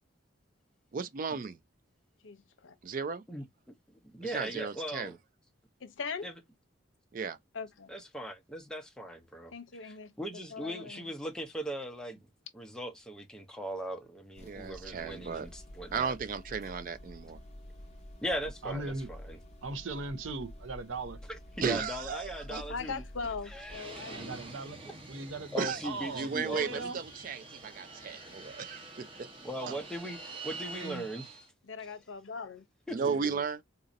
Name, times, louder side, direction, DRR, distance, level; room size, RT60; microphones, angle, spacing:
voice 1, 0.9-1.6 2.8-3.2 4.2-5.1 7.1-7.4 14.4-15.5 15.9-17.4 21.6-22.6 25.6-25.8 26.1-29.3 32.9-33.6, right 5 dB, 45° right, 0.3 m, -35 dB
voice 2, 2.2-2.7 5.8-6.3 7.5-7.9 9.5-10.1 10.5-11.0 22.7-24.4 31.6-32.6, left 5 dB, 75° left, 0.7 m, -40 dB
voice 3, 4.1-5.2 6.2-6.4 7.9-9.5 9.8-12.2 12.5-16.1 18.2-19.4 21.3-23.0 23.5-23.9 24.8-24.9 25.5-26.8 29.1-31.4 31.8-31.9 32.9-33.0, equal, 5° left, 0.6 m, -39 dB
sound 1, 14.4-23.8, left 1 dB, 35° left, 0.8 m, -49 dB
voice 4, 18.6-19.1 19.6-21.2 21.7-21.9 24.0-24.8 25.1-25.5 25.8-27.0 29.5-29.9 30.7-31.1 33.0-33.4, right 3 dB, 80° right, 0.6 m, -39 dB
Fixed-wing aircraft airplane, 23.7-31.5, right 3 dB, 25° right, 1.1 m, -46 dB
4.0 x 2.6 x 2.5 m
head